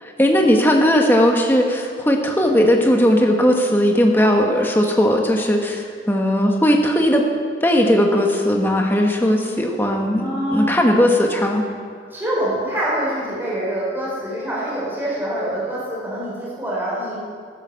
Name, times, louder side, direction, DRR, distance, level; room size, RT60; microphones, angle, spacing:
voice 1, 0.0-7.2 7.6-11.6, equal, 10° left, 1 dB, 1.2 m, -17 dB
voice 2, 10.2-10.7 12.1-17.2, right 1 dB, 10° right, -7 dB, 4.1 m, -25 dB
13.0 x 9.9 x 6.9 m, 2.1 s
head